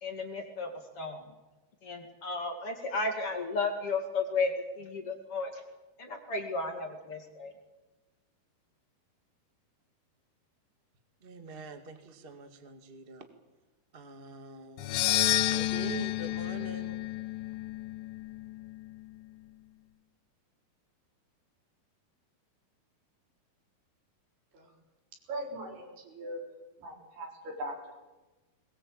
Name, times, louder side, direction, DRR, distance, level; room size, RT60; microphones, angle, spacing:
voice 1, 0.0-1.2 1.8-5.6 6.0-7.5, left 3 dB, 40° left, 3 dB, 2.8 m, -34 dB
voice 2, 11.2-13.3 13.9-15.1 15.5-17.0, right 3 dB, 25° right, 7 dB, 1.3 m, -44 dB
sound 1, 14.8-19.1, left 14 dB, 75° left, 2.5 m, -31 dB
voice 3, 25.3-26.4 26.8-27.9, right 1 dB, 85° right, 2 dB, 6.3 m, -40 dB
21.5 x 20.0 x 8.7 m, 1.1 s
omnidirectional pair, 4.5 m